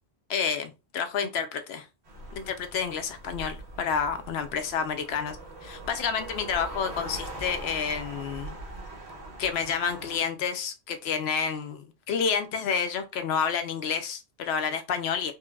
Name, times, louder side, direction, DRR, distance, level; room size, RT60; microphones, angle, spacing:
voice 1, 0.3-1.9 2.3-5.4 5.6-8.5 9.4-15.3, left 6 dB, 70° left, 0.8 m, -29 dB
sound 1, 2.0-10.2, right 1 dB, 75° right, 1.3 m, -41 dB
4.4 x 2.1 x 2.3 m
omnidirectional pair, 1.1 m